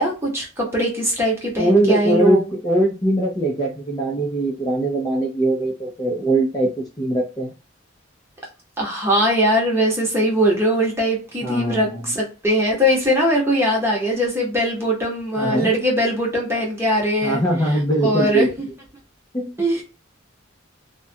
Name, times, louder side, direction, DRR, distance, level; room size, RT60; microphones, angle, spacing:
voice 1, 0.0-2.5 8.8-17.4 18.0-18.5 19.6-19.8, equal, 10° right, -2 dB, 0.9 m, -20 dB
voice 2, 1.6-7.5 11.4-12.0 15.4-15.7 17.2-18.5 19.3-19.5, right 1 dB, 20° left, -2 dB, 0.5 m, -21 dB
2.4 x 2.1 x 2.6 m, 0.32 s
head